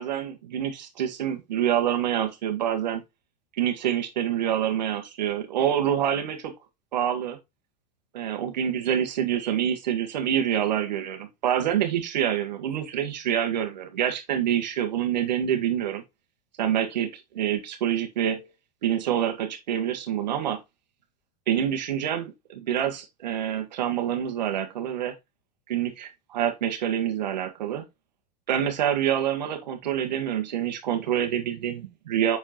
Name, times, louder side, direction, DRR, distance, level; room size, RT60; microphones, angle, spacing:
voice 1, 0.0-3.0 3.6-6.5 6.9-7.4 8.1-16.0 16.6-18.4 18.8-20.6 21.5-25.1 25.7-27.8 28.5-32.4, right 10 dB, 90° right, 1.7 m, -26 dB
6.9 x 4.6 x 3.0 m
supercardioid pair, 120°, 21 cm